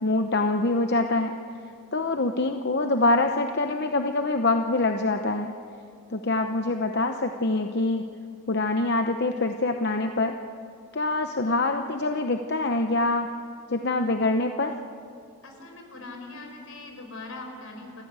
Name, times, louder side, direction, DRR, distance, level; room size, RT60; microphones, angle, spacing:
voice 1, 0.0-1.3 1.9-5.6 6.1-8.1 8.5-10.4 10.9-13.3 13.7-14.7, left 2 dB, 50° left, 5 dB, 0.8 m, -25 dB
voice 2, 15.4-18.0, left 2 dB, 75° left, 3 dB, 4.8 m, -41 dB
29.0 x 15.0 x 8.2 m, 2.3 s
head